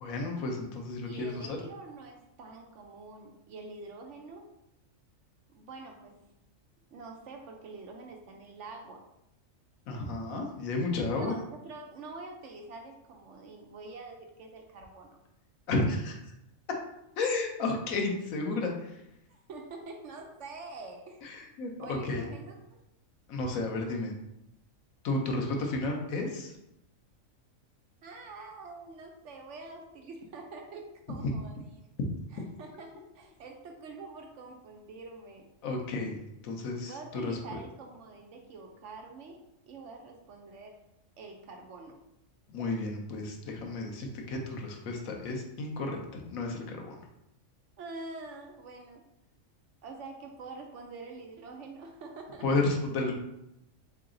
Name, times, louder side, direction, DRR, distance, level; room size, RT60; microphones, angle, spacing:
voice 1, 0.0-1.6 9.9-11.3 15.7-16.1 17.2-19.0 21.2-22.3 23.3-24.1 25.0-26.6 31.2-31.3 35.6-36.2 36.4-37.6 42.5-47.0 52.4-53.1, left 2 dB, 90° left, 2 dB, 1.2 m, -32 dB
voice 2, 1.0-4.5 5.5-6.2 6.9-9.1 11.1-15.2 19.3-21.2 21.8-22.8 28.0-31.9 32.3-35.5 36.8-40.8 41.2-42.0 47.8-49.0 49.8-52.5, right 3 dB, 65° right, 2 dB, 0.9 m, -46 dB
3.8 x 3.3 x 3.7 m, 0.83 s
omnidirectional pair, 1.4 m